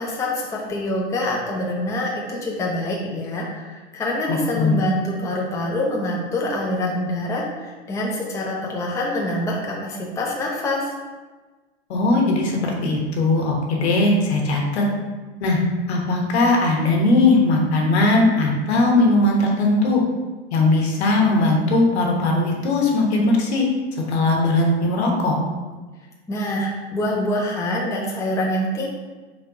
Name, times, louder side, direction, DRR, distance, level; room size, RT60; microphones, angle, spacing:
voice 1, 0.0-10.9 26.3-28.9, left 1 dB, 10° left, -3 dB, 0.5 m, -25 dB
voice 2, 4.3-4.7 11.9-14.8 15.4-15.6 15.9-20.0 20.5-23.6 24.0-25.4, left 2 dB, 80° left, 0 dB, 1.2 m, -19 dB
3.8 x 2.7 x 4.8 m, 1.3 s
hypercardioid pair, 120°, 32 cm